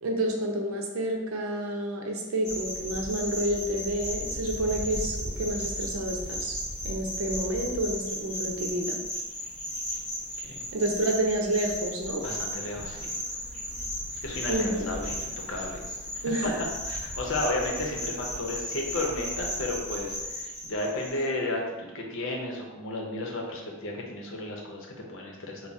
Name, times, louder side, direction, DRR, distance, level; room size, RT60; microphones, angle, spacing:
voice 1, 0.0-6.6 6.8-9.0 10.7-12.2 14.5-14.8 16.2-16.5, right 1 dB, 85° right, 2 dB, 0.6 m, -29 dB
sound 1, 2.4-21.3, equal, 5° left, 1.4 m, -35 dB
voice 2, 12.2-13.1 14.2-15.8 16.2-16.5 16.9-25.6, left 2 dB, 65° left, 0 dB, 0.7 m, -33 dB
3.5 x 2.1 x 4.0 m, 1.1 s
head